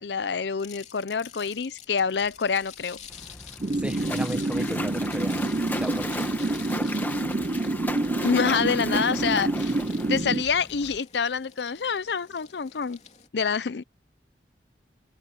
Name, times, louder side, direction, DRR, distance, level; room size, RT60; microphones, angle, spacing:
voice 1, 0.0-3.0 8.2-9.8 10.1-13.0 13.3-13.8, left 6 dB, 75° left, 0.6 m, -26 dB
sound 1, 0.6-13.3, left 8 dB, 40° left, 3.1 m, -47 dB
Splash splatter, 3.1-11.0, left 1 dB, 10° left, 1.6 m, -36 dB
sound 2, 3.6-10.4, right 2 dB, 35° right, 0.5 m, -27 dB
voice 2, 3.7-6.3, equal, 5° right, 1.2 m, -36 dB
head